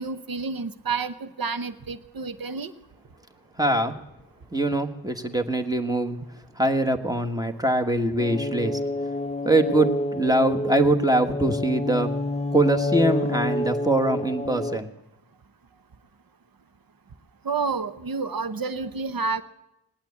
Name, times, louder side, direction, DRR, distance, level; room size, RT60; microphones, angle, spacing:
voice 1, 0.0-2.7 17.4-19.4, right 4 dB, 55° right, 12 dB, 0.9 m, -29 dB
voice 2, 3.6-4.0 4.5-6.2 6.6-8.8 9.4-12.1 12.5-14.9, right 1 dB, 10° right, 5 dB, 1.4 m, -23 dB
sound 1, 8.2-14.8, left 2 dB, 15° left, 0.5 m, -28 dB
19.0 x 8.8 x 8.5 m, 0.90 s
cardioid pair, 40°, 41 cm